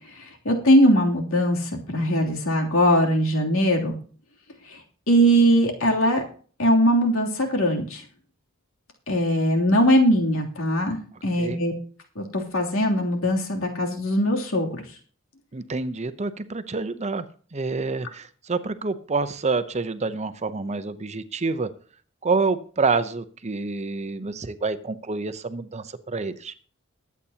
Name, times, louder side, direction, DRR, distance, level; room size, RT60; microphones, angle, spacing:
voice 1, 0.4-3.9 5.1-6.2 6.6-8.0 9.1-11.7 12.2-14.8, equal, 75° left, 0 dB, 2.9 m, -21 dB
voice 2, 15.5-17.2 17.5-21.7 22.2-26.5, right 4 dB, 35° right, 12 dB, 0.7 m, -27 dB
22.0 x 8.4 x 2.9 m, 0.43 s
head